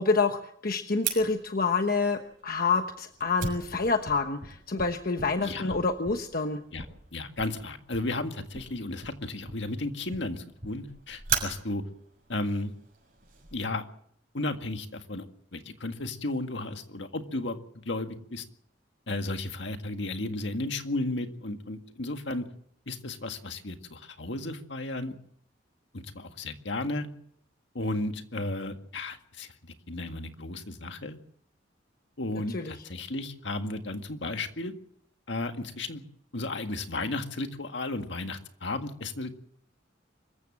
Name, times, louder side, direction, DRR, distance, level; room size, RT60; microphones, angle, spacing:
voice 1, 0.0-6.6 32.5-32.8, left 4 dB, 50° left, 6 dB, 1.1 m, -27 dB
Fire, 1.0-13.5, right 6 dB, 50° right, 6.6 m, -39 dB
voice 2, 7.1-11.8 12.3-12.7 13.5-13.8 14.3-17.6 17.9-18.4 19.1-22.5 22.9-25.2 25.9-27.1 27.7-31.2 32.2-34.7 35.3-36.0 36.3-39.3, left 2 dB, 70° left, 6 dB, 1.9 m, -34 dB
25.0 x 14.5 x 7.6 m, 0.68 s
head